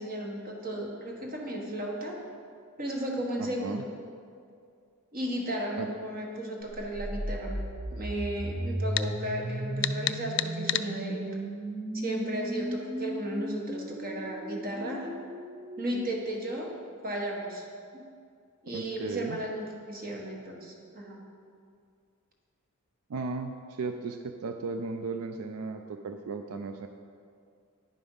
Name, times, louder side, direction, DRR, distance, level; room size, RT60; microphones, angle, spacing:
voice 1, 0.0-2.2 2.8-3.8 5.1-7.6 7.9-11.2 11.9-15.1 15.8-16.7 17.0-17.7 17.9-18.0 18.6-21.2, right 1 dB, 45° right, 0 dB, 1.3 m, -34 dB
voice 2, 3.4-3.8 5.8-5.9 18.7-19.4 23.1-26.9, right 4 dB, 85° right, 6 dB, 0.4 m, -35 dB
sound 1, 6.7-16.6, right 1 dB, 20° right, 0.4 m, -36 dB
sound 2, 9.0-9.1 9.8-10.9, left 13 dB, 55° left, 0.3 m, -29 dB
10.0 x 5.2 x 5.5 m, 2.3 s
head